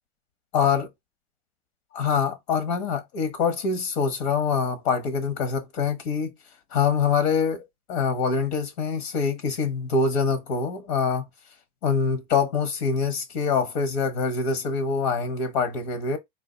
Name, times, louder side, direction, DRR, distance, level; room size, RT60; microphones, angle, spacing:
voice 1, 0.5-0.9 1.9-6.3 6.7-7.6 7.9-11.2 11.8-16.2, left 5 dB, 80° left, 1.2 m, -25 dB
4.0 x 2.5 x 3.9 m
supercardioid pair, 140°, 31 cm